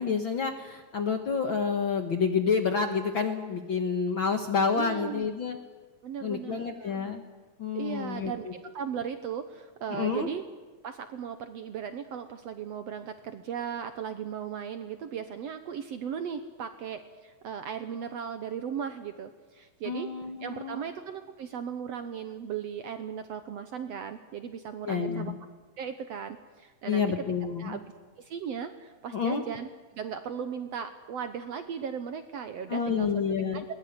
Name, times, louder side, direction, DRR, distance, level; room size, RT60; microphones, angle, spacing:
voice 1, 0.0-5.6 6.2-7.2 7.6-8.3 9.9-10.3 19.8-20.9 24.8-25.4 26.9-27.8 29.1-29.4 32.7-33.6, left 6 dB, 50° left, 6 dB, 1.5 m, -29 dB
voice 2, 4.7-5.3 6.0-7.0 7.7-10.4 10.8-20.1 20.4-25.3 25.8-27.3 27.6-27.8 28.2-29.7 29.9-33.2 33.5-33.6, right 8 dB, 65° right, 9 dB, 1.7 m, -37 dB
21.0 x 20.5 x 9.6 m, 1.4 s
omnidirectional pair, 3.9 m